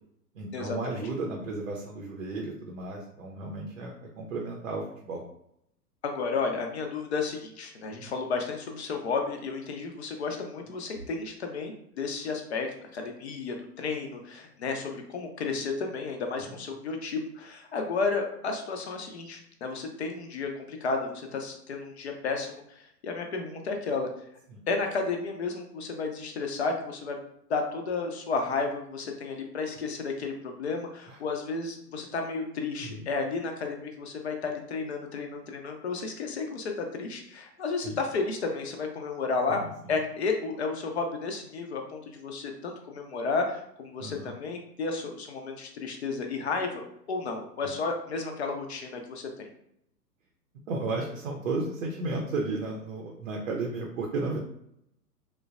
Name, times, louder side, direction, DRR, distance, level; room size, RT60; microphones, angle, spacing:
voice 1, 0.3-5.2 7.9-8.1 16.5-16.6 24.5-24.6 31.1-31.2 32.8-33.1 37.8-38.0 39.5-39.7 44.0-44.3 50.7-54.4, right 3 dB, 50° right, 0 dB, 0.6 m, -34 dB
voice 2, 6.0-12.7 12.9-24.1 24.7-27.2 27.5-39.6 39.9-49.5, left 4 dB, 45° left, 3 dB, 0.5 m, -32 dB
3.0 x 2.1 x 2.4 m, 0.75 s
figure-of-eight pair, 115°, 49 cm